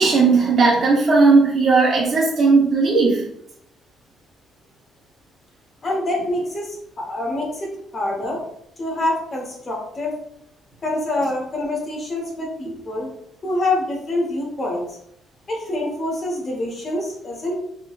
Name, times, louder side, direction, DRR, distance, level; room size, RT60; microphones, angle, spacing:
voice 1, 0.0-3.2, right 4 dB, 40° right, -5 dB, 0.6 m, -16 dB
voice 2, 5.8-8.4 8.8-10.1 10.8-13.1 13.4-15.0 15.5-17.6, left 1 dB, 30° left, -1 dB, 0.9 m, -26 dB
3.3 x 2.8 x 2.3 m, 0.75 s
cardioid pair, 155°, 0 cm